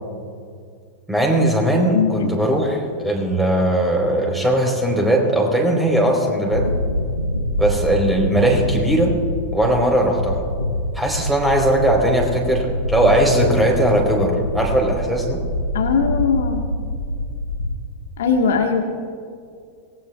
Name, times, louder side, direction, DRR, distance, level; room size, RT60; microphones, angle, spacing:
voice 1, 1.1-6.7 7.6-9.1 9.5-10.4 10.9-15.4, right 1 dB, 5° right, 0 dB, 3.8 m, -19 dB
voice 2, 1.9-2.5 15.7-16.6 18.2-18.8, left 6 dB, 60° left, 2 dB, 1.4 m, -20 dB
sound 1, 6.5-17.7, left 1 dB, 90° left, 0.9 m, -25 dB
25.5 x 19.0 x 2.3 m, 2.2 s
figure-of-eight pair, 90°, 0 cm